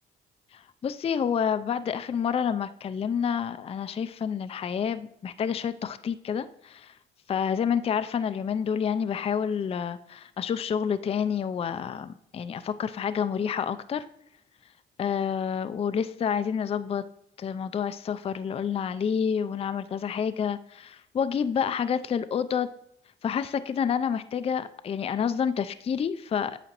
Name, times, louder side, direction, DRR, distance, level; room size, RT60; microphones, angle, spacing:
voice 1, 0.5-6.9 7.3-14.1 15.0-17.0 17.4-22.7 23.2-26.6, left 7 dB, 30° left, 11 dB, 0.3 m, -29 dB
9.0 x 6.3 x 2.9 m, 0.74 s
cardioid pair, 90°, 20 cm